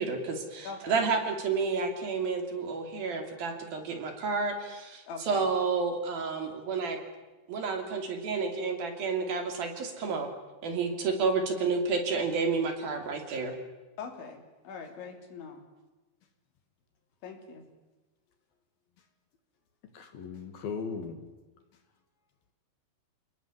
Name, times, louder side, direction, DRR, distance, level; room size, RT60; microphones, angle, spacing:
voice 1, 0.0-7.0 7.5-10.3 10.6-13.6, right 4 dB, 55° right, 5 dB, 4.2 m, -30 dB
voice 2, 0.7-1.1 5.1-5.5 14.0-15.6 17.2-17.7, left 5 dB, 75° left, 5 dB, 5.4 m, -42 dB
voice 3, 19.9-21.2, left 5 dB, 55° left, 7 dB, 3.5 m, -37 dB
29.0 x 19.0 x 9.7 m, 1.2 s
omnidirectional pair, 5.4 m